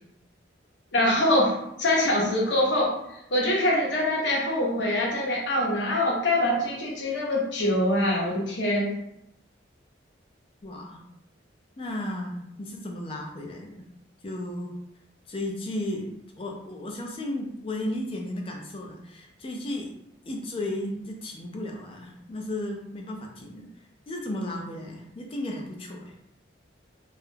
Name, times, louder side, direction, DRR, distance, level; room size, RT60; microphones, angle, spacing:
voice 1, 0.9-2.9 3.3-8.9, left 1 dB, 65° left, -3 dB, 0.6 m, -24 dB
voice 2, 10.6-11.1 11.8-13.8 14.2-14.7 15.3-16.1 16.4-19.9 20.3-23.7 24.1-26.1, left 1 dB, 30° left, 1 dB, 0.4 m, -34 dB
2.3 x 2.1 x 3.1 m, 0.80 s
head